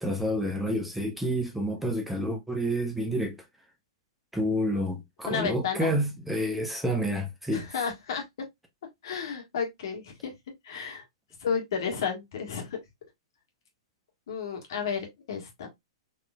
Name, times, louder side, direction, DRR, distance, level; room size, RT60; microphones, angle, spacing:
voice 1, 0.0-3.4 4.3-7.7, equal, 5° right, 0.7 m, -29 dB
voice 2, 5.2-5.9 7.5-8.2 9.0-10.3 10.6-11.0 11.4-12.8 14.3-15.7, left 6 dB, 60° left, 1.6 m, -32 dB
4.1 x 3.0 x 2.3 m
figure-of-eight pair, 110°, 3 cm